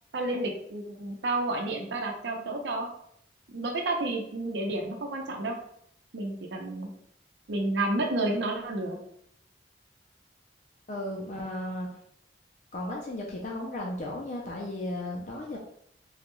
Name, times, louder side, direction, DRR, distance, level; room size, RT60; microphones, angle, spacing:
voice 1, 0.1-2.9 3.5-5.6 6.1-6.9 7.5-9.0, right 2 dB, 75° right, 2 dB, 0.7 m, -30 dB
voice 2, 10.9-12.0 12.7-15.6, left 1 dB, 40° left, -1 dB, 0.4 m, -35 dB
3.8 x 2.2 x 3.0 m, 0.70 s
head